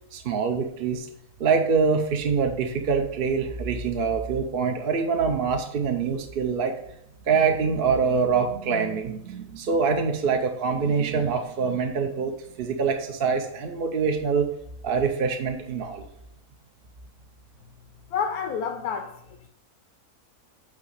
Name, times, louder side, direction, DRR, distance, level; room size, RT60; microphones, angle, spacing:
voice 1, 0.1-1.1 1.4-6.7 7.3-12.3 12.6-14.5 14.8-16.1, right 5 dB, 50° right, 4 dB, 0.7 m, -24 dB
voice 2, 18.1-19.5, left 6 dB, 85° left, 4 dB, 1.2 m, -29 dB
8.4 x 2.9 x 6.3 m, 0.74 s
omnidirectional pair, 1.6 m